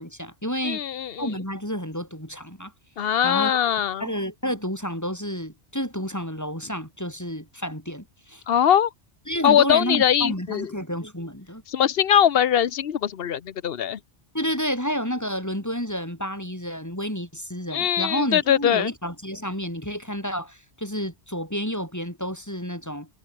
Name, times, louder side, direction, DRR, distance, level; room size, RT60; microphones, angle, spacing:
voice 1, 0.0-0.8 1.2-2.7 3.0-3.6 4.0-8.4 9.3-11.6 14.3-23.1, equal, 15° left, 5.1 m, -30 dB
voice 2, 0.6-1.3 3.0-4.1 8.5-8.9 9.4-10.7 11.7-14.0 17.7-18.9, left 9 dB, 60° left, 1.1 m, -21 dB
omnidirectional pair, 1.1 m